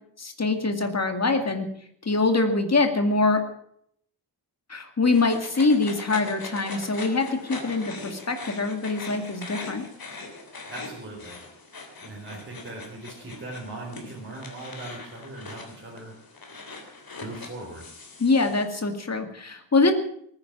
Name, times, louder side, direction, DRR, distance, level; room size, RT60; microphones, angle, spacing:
voice 1, 0.2-1.7 2.0-3.4 4.7-9.8 18.2-19.9, left 3 dB, 35° left, 6 dB, 2.2 m, -24 dB
sound 1, 5.1-18.7, left 3 dB, 50° left, 3.3 m, -41 dB
voice 2, 10.7-11.4 12.0-16.2 17.2-17.9, right 2 dB, 25° right, -4 dB, 4.3 m, -39 dB
19.5 x 9.9 x 7.3 m, 0.67 s
wide cardioid pair, 155°, 44 cm